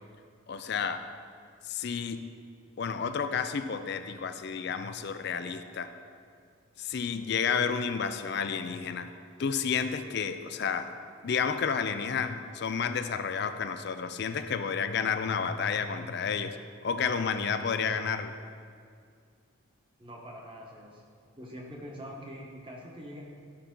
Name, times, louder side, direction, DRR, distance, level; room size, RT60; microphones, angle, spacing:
voice 1, 0.5-1.1 1.6-2.2 2.8-5.9 6.8-9.1 9.4-10.9 11.2-16.6 16.8-18.3, left 6 dB, 50° left, 9 dB, 0.4 m, -31 dB
voice 2, 20.0-21.0 21.4-23.2, equal, 25° right, -1 dB, 1.2 m, -44 dB
13.0 x 5.7 x 3.8 m, 2.2 s
head